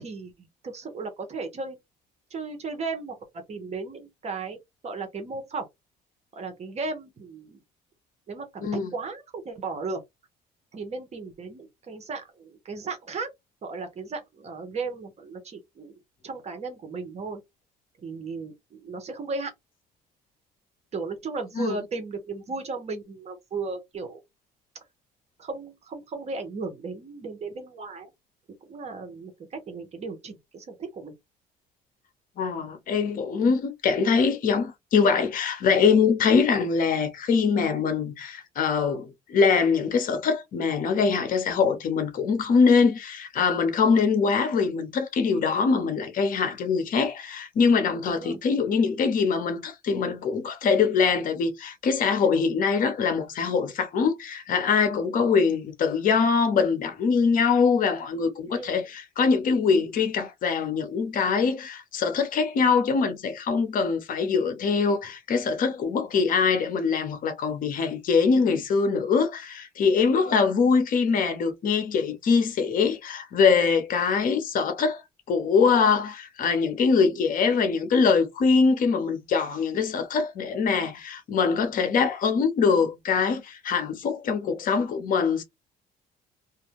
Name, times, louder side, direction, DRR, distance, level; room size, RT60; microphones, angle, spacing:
voice 1, 0.0-1.8 2.3-4.6 4.8-5.7 6.3-7.6 8.3-10.0 10.7-13.3 13.6-15.9 16.2-17.4 18.0-19.5 20.9-24.2 25.4-28.1 28.7-31.1 48.1-48.4 58.5-58.9 70.2-70.5, right 4 dB, 40° right, 0.9 m, -35 dB
voice 2, 8.6-8.9 21.6-21.8 32.4-75.0 75.3-85.4, left 5 dB, 55° left, 0.8 m, -23 dB
2.5 x 2.1 x 2.9 m
cardioid pair, 110°, 17 cm